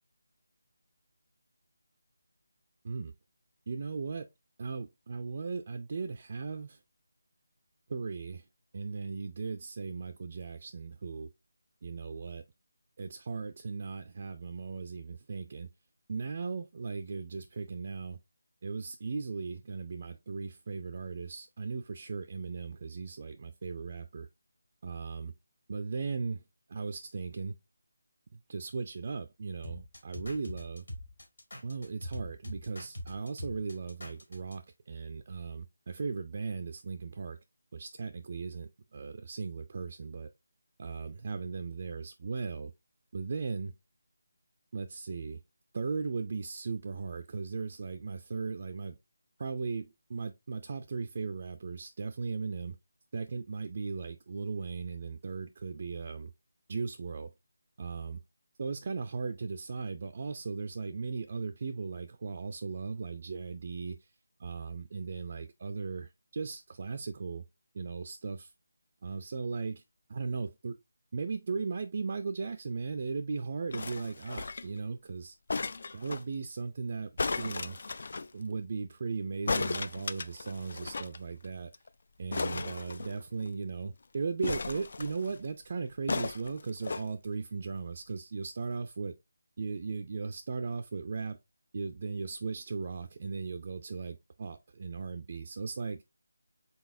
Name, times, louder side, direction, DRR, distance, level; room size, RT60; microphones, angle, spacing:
voice 1, 3.7-4.3 4.6-6.8 7.9-8.4 8.7-11.3 11.8-12.4 13.0-15.7 16.1-18.2 18.6-24.3 24.8-25.3 25.7-26.4 26.7-27.6 28.5-30.9 31.6-37.4 37.7-40.3 40.8-42.7 43.1-43.7 44.7-45.4 45.7-49.0 49.4-52.8 53.1-56.3 56.7-57.3 57.8-58.2 58.6-64.1 64.4-67.4 67.7-68.5 69.0-69.8 70.1-70.8 71.1-75.4 75.9-77.1 77.4-77.8 78.3-81.7 82.2-89.1 89.6-91.4 91.7-96.0, right 4 dB, 40° right, 0.3 m, -37 dB
sound 1, 29.6-34.5, left 1 dB, 85° left, 2.1 m, -42 dB
sound 2, 73.7-74.8 75.5-76.2 77.2-78.3 79.5-81.2 81.4-81.5 81.7-81.9 82.3-83.5 84.4-85.4 86.1-87.0 87.8-87.9, left 3 dB, 55° left, 0.3 m, -35 dB
4.0 x 4.0 x 2.6 m
figure-of-eight pair, 165°, 0 cm